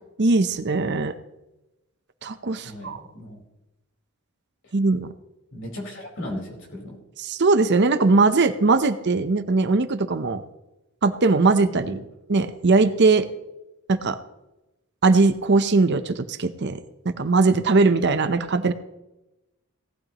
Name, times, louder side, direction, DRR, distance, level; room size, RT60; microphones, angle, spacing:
voice 1, 0.2-1.1 2.2-3.0 4.7-5.1 7.2-10.4 11.0-12.0 12.3-13.3 13.9-14.2 15.0-16.8 17.2-18.7, right 3 dB, 50° right, 11 dB, 0.7 m, -20 dB
voice 2, 2.6-3.4 5.5-7.0 11.9-12.0, left 1 dB, 60° left, -1 dB, 4.5 m, -36 dB
18.0 x 12.0 x 3.0 m, 0.97 s
head